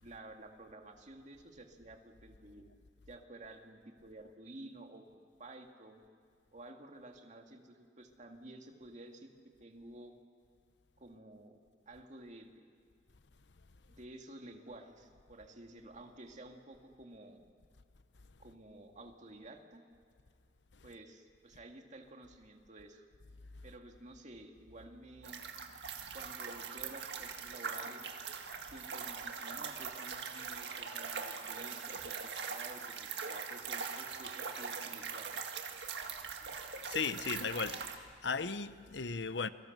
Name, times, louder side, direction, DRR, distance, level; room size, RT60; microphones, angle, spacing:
voice 1, 0.0-2.7 3.1-6.0 6.5-9.3 9.6-10.1 11.0-11.6 11.9-12.7 13.9-17.4 18.4-19.8 20.8-23.1 23.6-25.4 26.1-28.1 28.7-32.2 32.5-35.3, right 2 dB, 45° right, 2.3 m, -52 dB
sound 1, 25.2-38.0, right 5 dB, 70° right, 1.9 m, -42 dB
voice 2, 36.9-37.8 38.2-39.5, left 5 dB, 75° left, 0.9 m, -36 dB
28.5 x 23.0 x 6.7 m
head